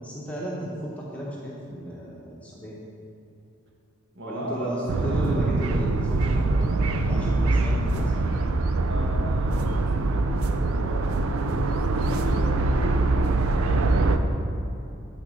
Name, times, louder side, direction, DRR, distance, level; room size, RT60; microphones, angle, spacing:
voice 1, 0.0-2.8 4.2-8.1, equal, 5° left, -5 dB, 0.9 m, -34 dB
voice 2, 4.1-5.4 8.9-14.4, equal, 60° right, 0 dB, 1.3 m, -38 dB
sound 1, 4.9-14.2, right 2 dB, 85° right, 0.5 m, -23 dB
7.4 x 6.6 x 5.4 m, 2.8 s
head